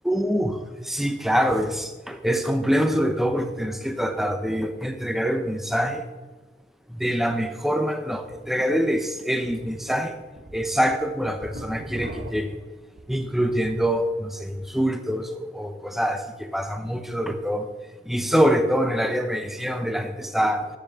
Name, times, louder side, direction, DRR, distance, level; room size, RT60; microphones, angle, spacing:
voice 1, 0.0-6.0 6.9-10.2 10.5-12.5 13.1-17.7 18.1-20.7, equal, ahead, 7 dB, 0.7 m, -25 dB
sound 1, 8.2-8.3 8.8-8.9 9.4-9.7 10.1-13.9 14.3-14.7, right 1 dB, 60° right, 1.4 m, -40 dB
10.5 x 7.7 x 6.8 m, 1.3 s
head